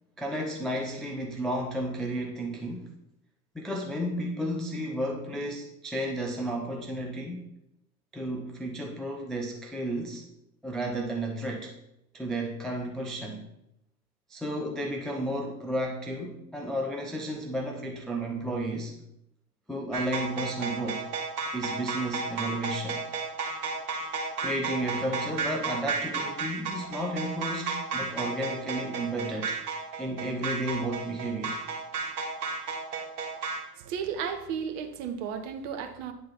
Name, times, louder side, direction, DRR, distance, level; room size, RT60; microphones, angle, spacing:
voice 1, 0.2-2.9 3.5-7.5 8.1-10.2 10.6-11.7 12.1-13.5 14.3-19.0 19.7-21.1 21.5-23.1 24.4-29.6 30.0-31.6, right 1 dB, ahead, 0 dB, 0.3 m, -32 dB
sound 1, 19.9-33.6, right 4 dB, 65° right, 1.8 m, -33 dB
voice 2, 33.7-36.1, right 7 dB, 50° right, 6 dB, 1.2 m, -34 dB
9.4 x 3.9 x 5.7 m, 0.82 s
figure-of-eight pair, 80°, 48 cm